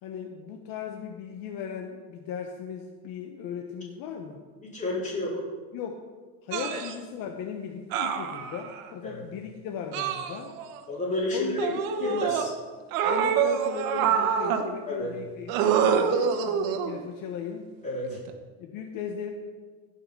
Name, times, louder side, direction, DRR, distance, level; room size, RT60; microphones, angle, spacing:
voice 1, 0.0-4.4 5.7-6.0 6.4-10.5 11.3-12.2 13.0-17.7 18.6-19.3, left 7 dB, 55° left, 3 dB, 1.0 m, -37 dB
voice 2, 4.6-5.4 9.0-9.1 10.9-11.5 12.0-12.5 14.9-15.1 17.8-18.2, left 2 dB, 20° left, -5 dB, 3.7 m, -30 dB
sound 1, 6.5-6.9 7.9-8.8 9.9-10.8 11.6-12.5 12.9-14.7 15.5-17.0 18.1-18.3, right 7 dB, 85° right, 1.2 m, -26 dB
16.0 x 5.7 x 5.4 m, 1.4 s
cardioid pair, 140°, 41 cm